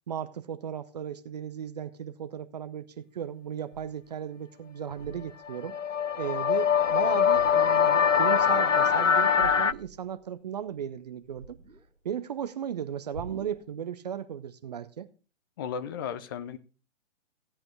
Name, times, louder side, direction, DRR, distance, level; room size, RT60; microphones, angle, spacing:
voice 1, 0.1-5.7 6.2-11.6 12.0-15.1, right 9 dB, 35° right, 0.7 m, -36 dB
sound 1, 3.7-4.1 4.8-5.7 6.1-6.4 6.7-7.9 9.4-10.2 10.5-12.1 13.1-13.7, right 3 dB, 80° right, 3.0 m, -46 dB
sound 2, 5.5-9.7, left 7 dB, 85° left, 0.6 m, -23 dB
voice 2, 15.6-16.6, left 7 dB, 20° left, 0.6 m, -34 dB
16.0 x 8.7 x 3.4 m
figure-of-eight pair, 130°, 37 cm